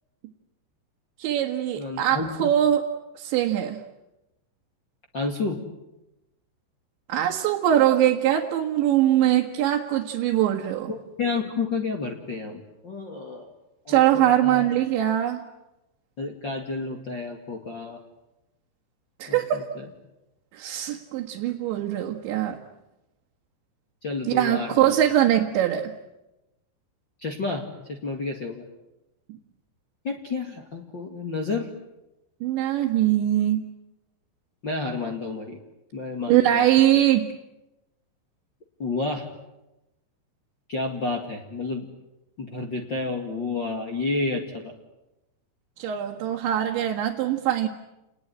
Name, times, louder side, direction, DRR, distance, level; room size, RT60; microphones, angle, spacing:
voice 1, 1.2-2.8 3.2-3.8 7.1-10.9 13.9-15.4 19.2-19.7 20.5-22.6 24.3-25.9 32.4-33.6 36.3-37.3 45.8-47.7, right 12 dB, 80° right, 1 dB, 3.9 m, -22 dB
voice 2, 1.7-2.5 5.1-5.7 10.9-13.5 13.9-14.7 16.2-18.0 19.3-19.8 24.0-24.9 27.2-28.6 30.0-31.7 34.6-35.6 35.9-36.6 38.8-39.3 40.7-41.9 42.4-44.7, left 3 dB, 40° left, 1 dB, 1.8 m, -30 dB
30.0 x 20.0 x 9.9 m, 0.95 s
omnidirectional pair, 5.2 m